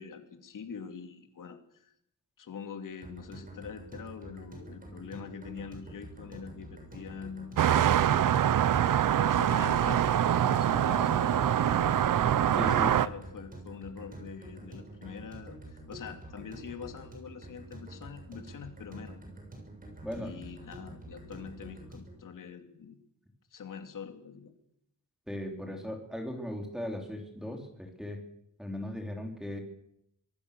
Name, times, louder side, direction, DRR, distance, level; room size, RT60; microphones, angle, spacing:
voice 1, 0.0-1.9 2.4-8.4 9.2-10.0 10.3-19.2 20.1-23.0 23.5-24.5, left 6 dB, 80° left, 6 dB, 2.8 m, -44 dB
sound 1, 3.0-22.2, right 1 dB, 25° right, 6.9 m, -47 dB
sound 2, 7.6-13.1, right 10 dB, 90° right, 0.8 m, -24 dB
voice 2, 10.7-11.1 12.5-12.9 20.0-20.3 25.3-28.2 28.6-29.6, left 1 dB, ahead, 2 dB, 3.7 m, -38 dB
25.5 x 18.5 x 6.9 m, 0.75 s
wide cardioid pair, 175°, 31 cm